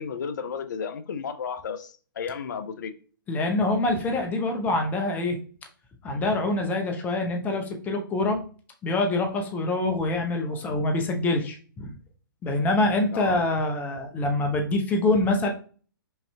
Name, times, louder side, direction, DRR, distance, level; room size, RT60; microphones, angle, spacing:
voice 1, 0.0-2.9 13.1-13.4, left 6 dB, 55° left, 0.5 m, -33 dB
voice 2, 3.3-5.4 6.0-8.4 8.8-11.9 12.4-15.5, left 2 dB, 15° left, 0.6 m, -25 dB
5.4 x 2.7 x 2.2 m
figure-of-eight pair, 125°, 12 cm